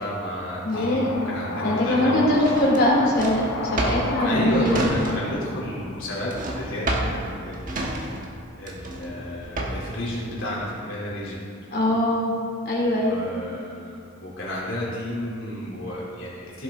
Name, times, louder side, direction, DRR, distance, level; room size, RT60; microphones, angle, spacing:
voice 1, 0.0-2.2 3.8-8.0 8.6-11.4 12.9-16.6, equal, 70° left, -6 dB, 2.9 m, -31 dB
voice 2, 0.6-1.3 1.6-5.2 11.7-12.3 12.6-13.3, left 1 dB, 50° left, -4 dB, 2.9 m, -22 dB
sound 1, 0.7-7.2, left 2 dB, 85° left, 1.1 m, -34 dB
Drawer open or close, 2.4-5.5 5.7-10.0, right 1 dB, 40° right, 1.2 m, -30 dB
15.5 x 7.0 x 3.6 m, 2.2 s
head